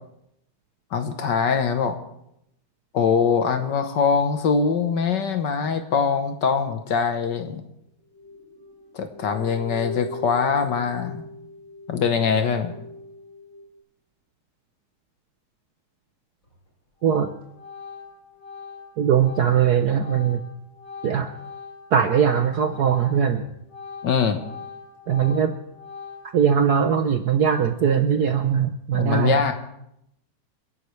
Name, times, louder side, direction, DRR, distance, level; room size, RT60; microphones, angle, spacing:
voice 1, 0.9-1.9 2.9-7.6 8.9-11.2 11.9-12.7 24.0-24.4 28.9-29.5, left 6 dB, 60° left, 7 dB, 1.5 m, -23 dB
sound 1, 8.1-13.8, left 2 dB, 45° right, 3.9 m, -39 dB
Organ, 16.4-16.7 17.0-23.3 23.6-26.5, left 5 dB, 35° left, 6.7 m, -41 dB
voice 2, 19.0-20.4 21.0-21.3 21.9-23.5 25.1-25.5 26.3-29.4, right 8 dB, 65° right, 7 dB, 1.0 m, -20 dB
29.0 x 11.0 x 3.2 m, 0.79 s
omnidirectional pair, 2.4 m